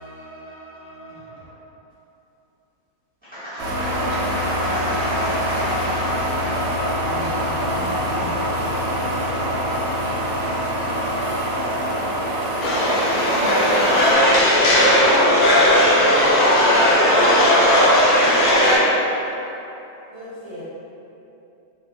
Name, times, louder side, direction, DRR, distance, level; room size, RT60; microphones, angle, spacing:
voice 1, 0.0-1.6 11.8-12.0, right 1 dB, 25° left, 0.8 m, -43 dB
voice 2, 3.2-8.8 13.3-14.0 15.5-15.6, equal, 30° right, 0.5 m, -34 dB
sound 1, 3.6-14.1, equal, 85° right, 0.7 m, -24 dB
sound 2, 12.6-18.8, equal, 90° left, 1.6 m, -16 dB
voice 3, 17.8-18.4 20.1-20.6, equal, 55° right, 0.8 m, -39 dB
6.2 x 2.1 x 2.6 m
omnidirectional pair, 2.2 m